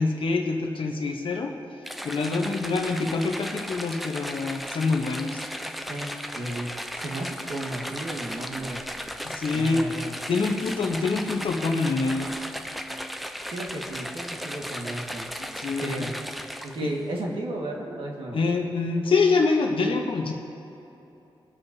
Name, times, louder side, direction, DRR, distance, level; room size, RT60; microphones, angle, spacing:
voice 1, 0.0-1.5 2.0-5.4 9.2-9.8 10.3-12.3 15.6-16.1 16.8-16.9 18.3-20.3, left 3 dB, 70° left, 1 dB, 0.9 m, -25 dB
sound 1, 1.9-17.0, equal, ahead, 0.5 m, -36 dB
voice 2, 5.9-8.9 9.5-10.2 13.5-15.3 15.8-16.1 16.6-18.5, right 1 dB, 65° right, -1 dB, 1.6 m, -34 dB
21.5 x 7.3 x 2.7 m, 2.9 s
wide cardioid pair, 90°, 9 cm